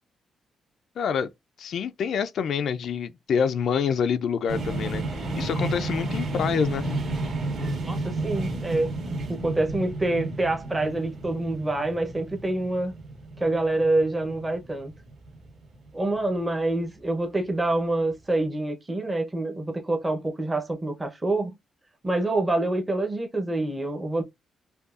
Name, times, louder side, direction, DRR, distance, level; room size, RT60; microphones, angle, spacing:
voice 1, 1.0-1.3 1.6-5.0 5.4-6.9, left 7 dB, 60° left, 0.4 m, -26 dB
sound 1, 4.5-16.3, right 2 dB, 45° right, 1.6 m, -32 dB
voice 2, 7.8-12.9 13.4-14.9 15.9-21.6 22.0-24.2, right 2 dB, 15° right, 0.8 m, -26 dB
5.2 x 2.3 x 2.4 m
cardioid pair, 140°, 0 cm